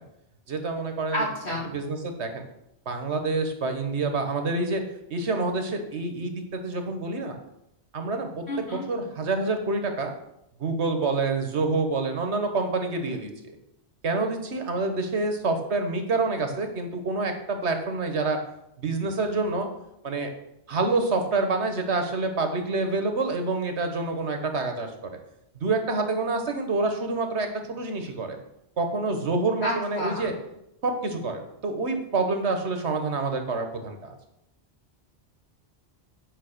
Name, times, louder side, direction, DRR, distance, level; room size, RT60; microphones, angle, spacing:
voice 1, 0.5-1.3 1.6-2.4 2.8-4.8 5.1-7.4 7.9-10.1 10.6-13.6 14.0-18.4 18.8-19.7 20.0-20.3 20.7-24.9 25.5-28.4 28.8-30.3 30.8-34.1, right 3 dB, 90° right, 5 dB, 1.6 m, -27 dB
voice 2, 1.1-1.7 8.5-8.8 29.6-30.3, equal, 70° left, -2 dB, 2.8 m, -29 dB
8.4 x 5.4 x 6.6 m, 0.81 s
omnidirectional pair, 1.1 m